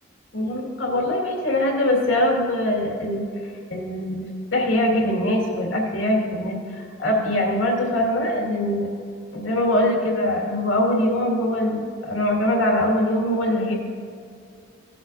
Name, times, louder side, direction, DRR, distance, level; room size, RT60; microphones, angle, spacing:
voice 1, 0.3-3.2 3.7-8.9 9.3-13.8, left 1 dB, 85° left, -1 dB, 2.0 m, -22 dB
15.5 x 7.9 x 2.6 m, 2.3 s
head